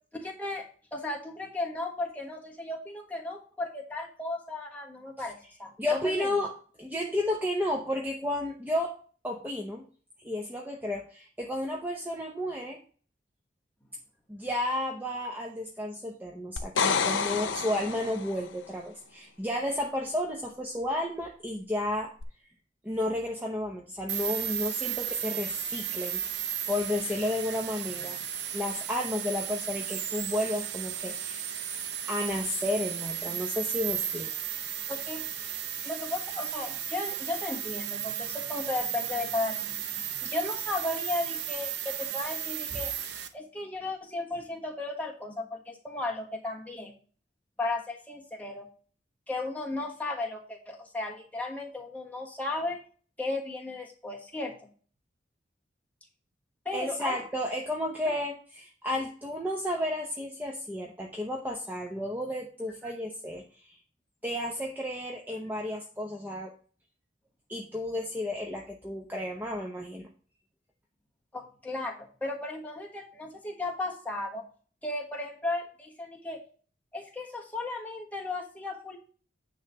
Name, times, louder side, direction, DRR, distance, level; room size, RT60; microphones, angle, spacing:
voice 1, 0.1-0.6 0.9-6.3 34.9-35.2 35.8-42.9 43.3-46.9 47.6-48.7 49.3-52.8 53.2-54.7 56.6-57.2 71.3-74.4 74.8-76.4 76.9-79.0, left 2 dB, 10° left, -1 dB, 1.4 m, -35 dB
voice 2, 5.8-6.5 6.8-8.9 9.2-9.8 10.2-12.8 14.3-22.1 22.8-28.2 28.5-31.5 32.1-34.3 35.7-35.9 56.7-63.8 64.2-66.5 67.5-70.1, left 1 dB, 10° right, 0 dB, 0.8 m, -32 dB
sound 1, 16.6-18.5 22.2-22.3, left 5 dB, 85° left, 0.8 m, -29 dB
sound 2, 24.1-43.3, right 9 dB, 60° right, 0.8 m, -34 dB
9.6 x 3.3 x 6.9 m, 0.42 s
head